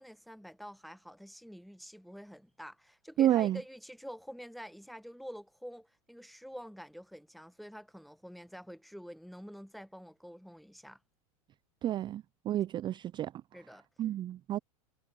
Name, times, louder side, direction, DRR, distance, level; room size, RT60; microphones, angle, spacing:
voice 1, 0.0-11.0 13.5-13.9, equal, ahead, 1.1 m, -48 dB
voice 2, 3.2-3.6 11.8-13.3 14.0-14.6, right 12 dB, 25° right, 0.4 m, -30 dB
hypercardioid pair, 90°, 19 cm